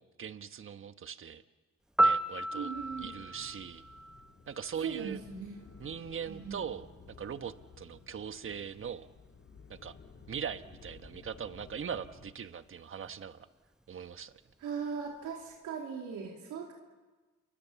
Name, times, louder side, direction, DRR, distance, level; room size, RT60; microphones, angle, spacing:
voice 1, 0.0-1.4 2.0-2.7 3.0-3.8 4.5-5.2 5.8-9.1 9.7-9.9 10.3-13.5 13.9-14.3, right 7 dB, 45° right, 10 dB, 1.3 m, -40 dB
Piano, 2.0-4.9 13.1-13.3, right 1 dB, ahead, 0.9 m, -32 dB
voice 2, 2.5-3.1 4.8-5.6 6.3-6.6 14.6-16.7, right 6 dB, 85° right, -1 dB, 3.5 m, -39 dB
sound 1, 2.7-12.3, left 5 dB, 45° left, 3.2 m, -55 dB
29.5 x 24.5 x 7.1 m, 1.3 s
cardioid pair, 90°, 30 cm